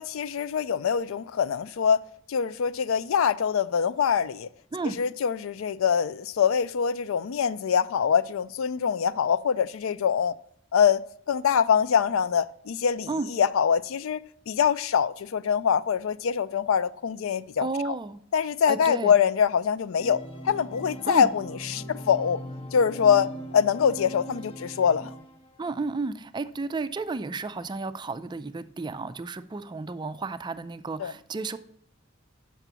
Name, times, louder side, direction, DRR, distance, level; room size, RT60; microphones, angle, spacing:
voice 1, 0.0-2.0 2.3-4.5 5.0-10.3 10.7-11.0 11.3-17.7 18.3-22.4 22.7-25.1 31.0-31.1, left 7 dB, 85° left, 0.4 m, -24 dB
voice 2, 17.6-18.2 18.7-19.2 21.0-21.3 25.6-31.6, right 3 dB, 20° right, 0.4 m, -32 dB
Organ, 20.0-25.7, right 1 dB, 30° left, 0.9 m, -40 dB
6.0 x 6.0 x 6.8 m
head